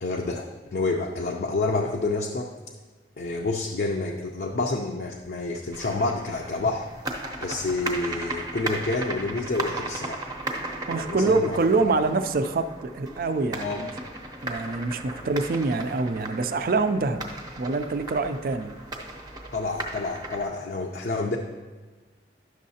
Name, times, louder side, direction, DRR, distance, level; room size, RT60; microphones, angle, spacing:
voice 1, 0.0-2.5 3.2-6.9 7.4-10.3 11.0-11.8 13.6-13.8 15.2-15.3 19.5-21.4, left 3 dB, 60° left, 1 dB, 0.5 m, -28 dB
sound 1, 5.7-20.5, right 2 dB, 20° right, 0.7 m, -36 dB
voice 2, 10.9-13.9 14.4-17.2 17.6-18.7, right 3 dB, 55° right, 10 dB, 0.4 m, -25 dB
11.0 x 6.4 x 2.8 m, 1.3 s
head